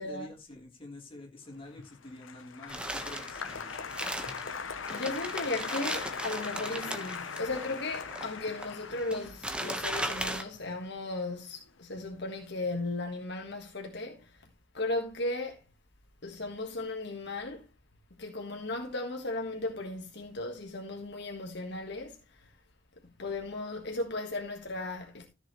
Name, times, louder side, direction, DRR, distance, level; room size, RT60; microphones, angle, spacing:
voice 1, 0.0-3.4, left 2 dB, 30° left, 3.6 m, -47 dB
Applause, 1.6-12.0 12.3-12.9, left 6 dB, 90° left, 1.0 m, -41 dB
sound 1, 2.7-10.4, right 1 dB, 5° right, 1.3 m, -37 dB
voice 2, 4.9-14.4 14.7-15.6 16.2-17.7 18.2-22.5 23.0-25.3, left 2 dB, 60° left, 1.6 m, -36 dB
14.0 x 6.8 x 3.2 m
head